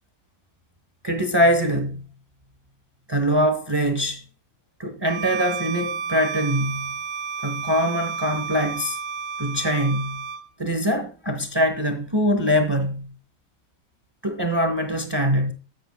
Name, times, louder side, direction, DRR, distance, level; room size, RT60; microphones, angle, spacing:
voice 1, 1.0-2.0 3.1-4.2 4.8-6.9 7.4-9.0 9.4-10.2 10.6-13.1 14.2-15.5, equal, 30° right, 0.5 m, -23 dB
Bowed string instrument, 5.0-10.5, right 5 dB, 90° right, 1.5 m, -31 dB
14.0 x 7.9 x 2.3 m
omnidirectional pair, 2.3 m